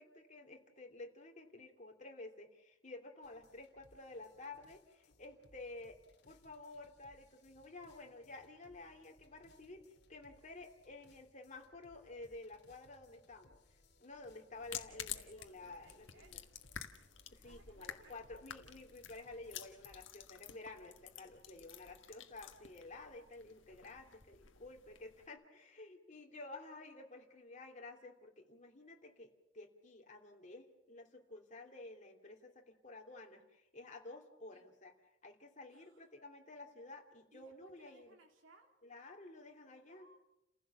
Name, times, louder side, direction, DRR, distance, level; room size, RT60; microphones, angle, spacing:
voice 1, 0.0-6.0 6.3-9.8 10.1-13.6 14.0-16.4 17.3-34.9 35.2-38.2 38.8-40.1, left 2 dB, 40° left, 2 dB, 3.0 m, -52 dB
sound 1, 3.2-20.1, left 2 dB, 60° left, 2.2 m, -68 dB
sound 2, 14.5-25.3, left 9 dB, 75° left, 1.6 m, -51 dB
voice 2, 15.1-16.5 17.4-18.5 34.5-34.7 35.7-36.1 37.3-38.7 39.9-40.2, right 2 dB, 85° right, 2 dB, 3.3 m, -65 dB
30.0 x 15.5 x 7.2 m, 0.92 s
head